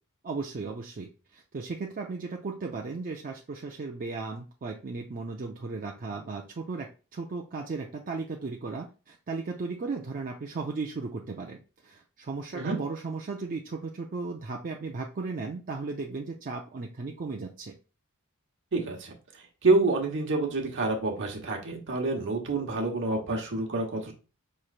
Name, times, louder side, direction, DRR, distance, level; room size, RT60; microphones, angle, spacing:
voice 1, 0.2-17.7, right 4 dB, 40° right, 1 dB, 0.4 m, -36 dB
voice 2, 18.7-19.1 19.6-24.1, right 3 dB, 60° right, 1 dB, 1.1 m, -27 dB
5.6 x 3.1 x 2.4 m, 0.34 s
head